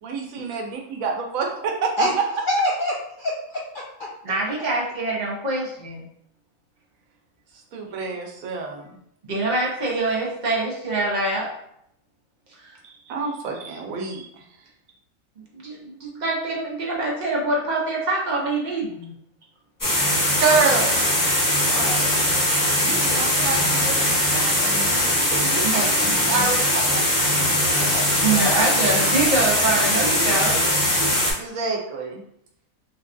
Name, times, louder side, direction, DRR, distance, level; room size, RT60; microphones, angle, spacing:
voice 1, 0.0-1.9 7.7-9.0 12.8-14.4 20.4-21.1 22.8-28.6 31.4-32.2, right 4 dB, 90° right, 1 dB, 1.1 m, -28 dB
voice 2, 2.5-3.6 20.4-20.7 21.6-22.2, left 1 dB, 70° left, -3 dB, 0.5 m, -26 dB
voice 3, 4.2-6.0 9.3-11.5 12.6-12.8 15.5-19.1 25.6-26.1 28.2-30.6, right 2 dB, 45° right, -3 dB, 0.7 m, -25 dB
sound 1, 19.8-31.3, left 1 dB, 20° left, 0.6 m, -21 dB
3.4 x 2.2 x 2.5 m, 0.73 s
omnidirectional pair, 1.4 m